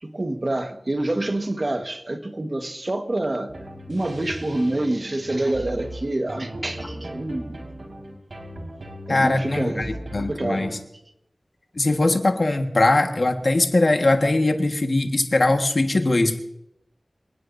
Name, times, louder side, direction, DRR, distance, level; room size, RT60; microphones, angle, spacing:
voice 1, 0.0-3.5 3.9-7.6 9.1-10.8, right 1 dB, 45° right, 1.4 m, -27 dB
sound 1, 3.5-10.8, right 1 dB, 80° right, 4.8 m, -38 dB
voice 2, 9.1-10.7 11.7-16.4, left 2 dB, 60° left, 1.6 m, -21 dB
27.0 x 18.5 x 2.7 m
wide cardioid pair, 70°, 0 cm